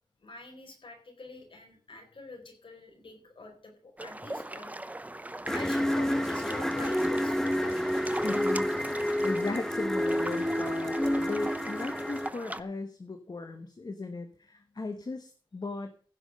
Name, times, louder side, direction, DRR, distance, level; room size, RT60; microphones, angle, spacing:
voice 1, 0.2-4.7 5.5-7.9, left 3 dB, 75° left, 2 dB, 4.4 m, -46 dB
sound 1, 4.0-12.6, right 1 dB, 15° right, 0.7 m, -39 dB
sound 2, 5.5-12.3, equal, 5° left, 0.9 m, -29 dB
voice 2, 8.2-16.1, left 3 dB, 50° left, 7 dB, 1.2 m, -37 dB
16.0 x 6.2 x 6.3 m, 0.43 s
wide cardioid pair, 70°, 9 cm